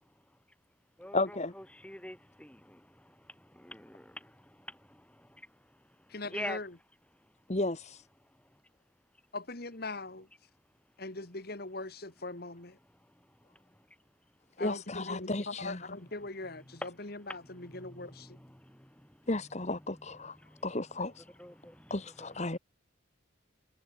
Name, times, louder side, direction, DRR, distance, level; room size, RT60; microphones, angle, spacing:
voice 1, 0.0-6.6 7.1-7.6 8.2-9.3 10.5-11.0 12.8-14.6 16.4-22.6, left 1 dB, 5° left, 3.2 m, -49 dB
voice 2, 1.1-1.5 7.5-8.0 14.6-15.8 19.3-20.4 20.6-21.2 21.9-22.6, left 2 dB, 35° left, 1.4 m, -33 dB
voice 3, 6.1-6.7 9.3-10.3 11.0-12.8 14.6-18.4, left 2 dB, 50° left, 2.0 m, -41 dB
head